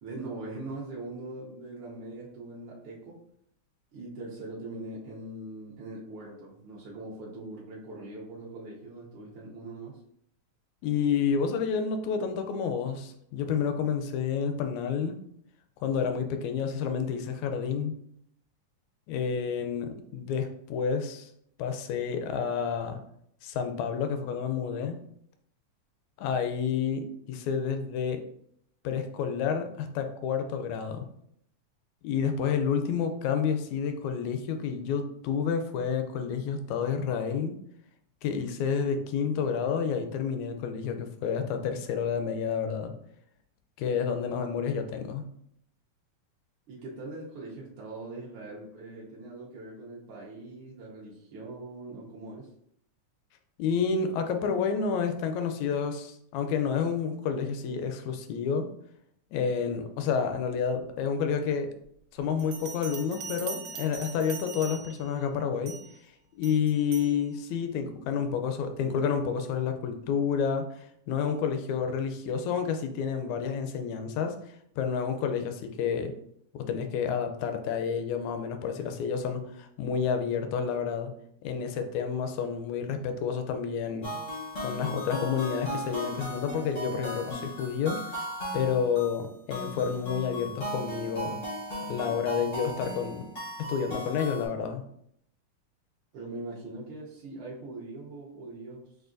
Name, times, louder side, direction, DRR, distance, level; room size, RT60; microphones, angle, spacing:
voice 1, 0.0-3.2 3.9-10.0 46.7-52.5 96.1-98.9, right 2 dB, 70° right, -5 dB, 1.3 m, -41 dB
voice 2, 10.8-15.2 15.8-17.9 19.1-21.3 21.6-23.0 23.4-25.0 26.2-28.2 28.8-31.1 32.0-37.6 38.2-42.9 43.8-45.3 53.6-58.7 59.3-61.7 62.1-65.8 66.4-74.4 74.8-76.1 76.5-81.1 81.4-84.1 84.6-88.3 88.5-91.4 91.9-93.3 93.6-94.8, left 6 dB, 80° left, 6 dB, 1.8 m, -29 dB
Bell, 62.4-65.1 65.7-66.0 66.4-67.2, right 6 dB, 90° right, 2.0 m, -41 dB
sound 1, 84.0-94.5, equal, 55° left, 0.8 m, -37 dB
6.2 x 2.5 x 2.5 m, 0.70 s
omnidirectional pair, 3.3 m